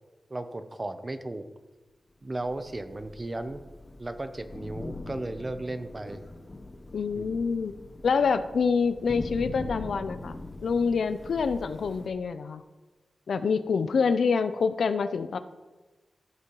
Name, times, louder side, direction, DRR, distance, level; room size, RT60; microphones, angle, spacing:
voice 1, 0.3-1.5 2.2-3.6 4.0-6.2 7.2-7.3, right 2 dB, 25° right, 9 dB, 0.7 m, -35 dB
Thunder / Rain, 2.4-12.1, left 2 dB, 30° left, 0.9 m, -42 dB
voice 2, 6.9-7.7 8.0-12.6 13.3-15.4, left 5 dB, 90° left, 11 dB, 0.5 m, -26 dB
15.0 x 6.7 x 3.1 m, 1.2 s
wide cardioid pair, 130°, 0 cm